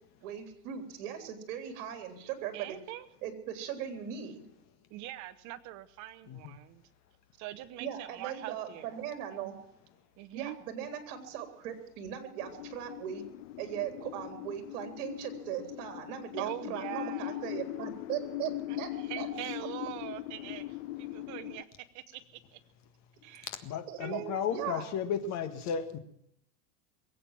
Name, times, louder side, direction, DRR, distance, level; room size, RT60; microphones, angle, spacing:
voice 1, 0.2-2.8 3.2-4.4 7.8-9.5 10.3-13.2 13.6-18.5 18.8-19.3 23.9-24.2 24.5-24.9, right 9 dB, 55° right, 7 dB, 3.7 m, -39 dB
voice 2, 2.5-3.1 4.9-6.8 7.4-9.0 9.3-9.5 10.2-10.6 16.4-17.4 18.7-18.8 19.0-21.7 21.9-22.2 22.5-22.6 23.2-23.5 24.0-24.6, right 14 dB, 40° right, 13 dB, 1.0 m, -42 dB
sound 1, 12.4-21.6, left 16 dB, 55° left, 0.7 m, -40 dB
voice 3, 23.6-26.0, left 7 dB, 35° left, 9 dB, 1.8 m, -34 dB
22.5 x 8.7 x 7.5 m, 0.73 s
supercardioid pair, 140°, 46 cm